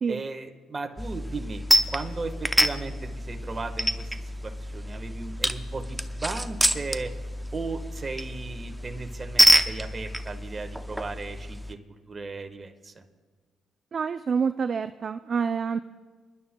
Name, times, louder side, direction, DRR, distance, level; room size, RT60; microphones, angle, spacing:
voice 1, 0.1-7.1 7.5-11.8 12.1-13.0, right 3 dB, 30° right, 5 dB, 1.3 m, -36 dB
sound 1, 1.0-11.7, equal, 5° right, 0.6 m, -27 dB
voice 2, 13.9-15.8, right 6 dB, 45° right, 10 dB, 0.4 m, -27 dB
27.5 x 11.5 x 2.2 m, 1.5 s
cardioid pair, 90°, 0 cm